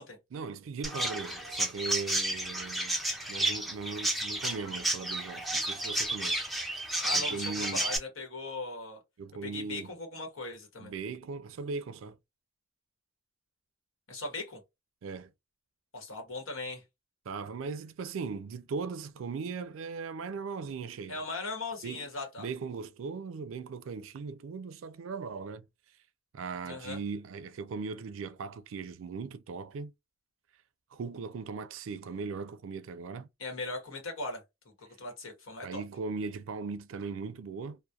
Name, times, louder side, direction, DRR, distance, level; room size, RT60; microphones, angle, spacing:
voice 1, 0.3-3.0 3.3-6.4 7.1-7.9 9.2-9.9 10.8-12.2 15.0-15.3 17.3-21.2 21.8-22.1 22.4-25.6 26.3-29.9 30.9-33.3 35.6-37.8, right 4 dB, 70° right, 0.4 m, -38 dB
Chirp tweet, 0.8-8.0, right 1 dB, ahead, 0.5 m, -32 dB
voice 2, 7.0-9.0 9.4-10.9 14.1-14.6 15.9-16.8 21.1-22.5 26.6-27.0 33.4-34.4 34.8-35.8, left 3 dB, 80° left, 1.1 m, -39 dB
2.3 x 2.1 x 2.7 m
head